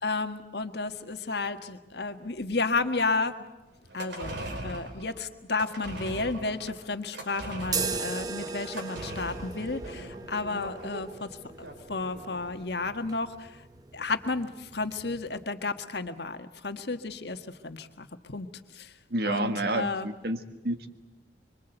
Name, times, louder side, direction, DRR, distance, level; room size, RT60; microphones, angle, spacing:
voice 1, 0.0-3.3 3.9-11.3 11.9-13.6 13.9-18.5 18.7-18.9 19.2-20.1, left 3 dB, 65° left, 8 dB, 1.6 m, -32 dB
sound 1, 3.8-12.4 12.7-12.8, right 1 dB, 75° right, 5.3 m, -40 dB
sound 2, 7.6-15.4, right 4 dB, 20° right, 0.8 m, -38 dB
voice 2, 19.1-20.4 20.6-20.9, right 1 dB, 55° right, 8 dB, 1.7 m, -29 dB
25.0 x 25.0 x 8.0 m, 1.0 s
head